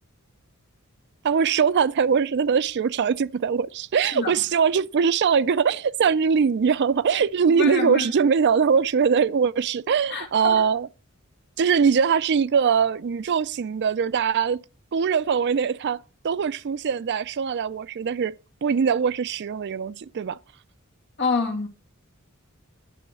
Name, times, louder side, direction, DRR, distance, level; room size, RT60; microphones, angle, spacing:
voice 1, 1.2-10.9 11.6-14.6 14.9-18.3 18.6-20.4, right 6 dB, 55° right, 0.4 m, -22 dB
voice 2, 7.4-8.1 10.1-10.7 21.2-21.7, left 4 dB, 55° left, 1.8 m, -27 dB
10.0 x 5.6 x 6.3 m
head